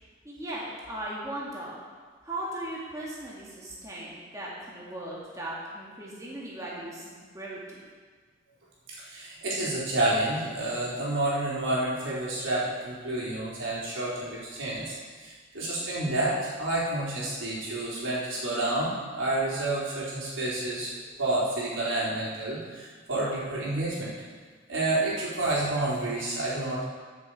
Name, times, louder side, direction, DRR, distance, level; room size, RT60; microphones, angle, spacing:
voice 1, 0.2-1.8 2.2-7.8, right 1 dB, 15° right, -6 dB, 2.0 m, -38 dB
voice 2, 9.0-20.9 21.2-24.1 24.7-26.8, right 2 dB, 80° right, -7 dB, 3.7 m, -29 dB
14.5 x 6.9 x 4.8 m, 1.5 s
head